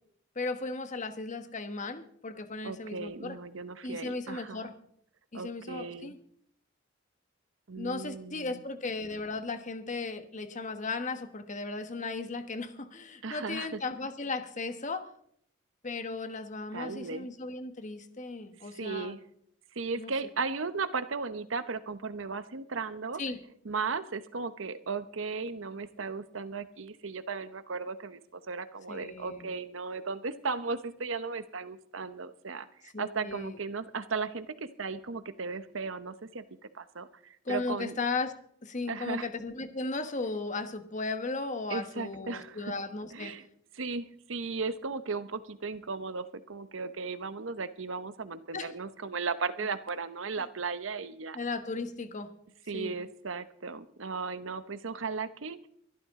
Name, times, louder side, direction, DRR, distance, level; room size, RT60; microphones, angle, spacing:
voice 1, 0.3-3.4 3.8-4.7 5.3-6.2 7.8-15.0 15.8-19.1 20.0-20.1 23.2-23.4 28.9-29.5 32.9-33.6 37.4-38.3 38.6-43.3 48.5-48.7 49.6-49.7 51.3-52.3 52.7-52.9, left 3 dB, 40° left, 9 dB, 1.3 m, -36 dB
voice 2, 2.6-4.6 5.3-6.1 7.7-8.6 13.2-13.8 16.7-17.3 18.6-19.2 19.7-23.2 23.6-36.4 36.7-37.9 38.9-39.3 41.7-42.7 43.1-43.4 43.7-51.4 52.7-55.7, right 4 dB, 75° right, 12 dB, 0.9 m, -36 dB
22.5 x 12.5 x 3.7 m, 0.68 s
head